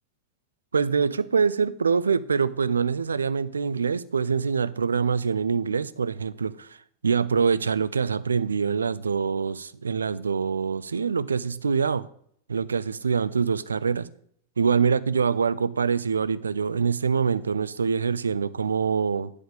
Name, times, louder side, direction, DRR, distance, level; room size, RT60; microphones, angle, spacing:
voice 1, 0.7-6.8 7.0-12.1 12.5-14.1 14.6-19.3, right 6 dB, 75° right, 16 dB, 0.4 m, -25 dB
10.0 x 5.0 x 5.1 m, 0.65 s
figure-of-eight pair, 90°, 0 cm